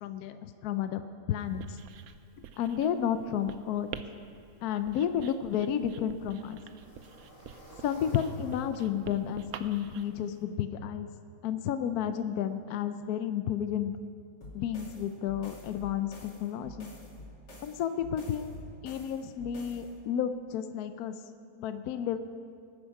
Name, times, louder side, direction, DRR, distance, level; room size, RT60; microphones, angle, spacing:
voice 1, 0.0-1.0 1.3-1.8 2.6-4.0 4.6-6.6 7.8-11.1 11.4-13.9 14.5-16.9 17.6-18.5 18.8-21.1 21.6-22.2, left 9 dB, 70° left, 10 dB, 1.0 m, -31 dB
Writing, 1.4-10.0, right 8 dB, 70° right, 1.0 m, -48 dB
sound 1, 5.4-10.4, equal, 20° left, 4.6 m, -55 dB
sound 2, 14.4-19.9, left 1 dB, 90° left, 3.2 m, -48 dB
19.5 x 11.5 x 4.7 m, 2.3 s
omnidirectional pair, 1.8 m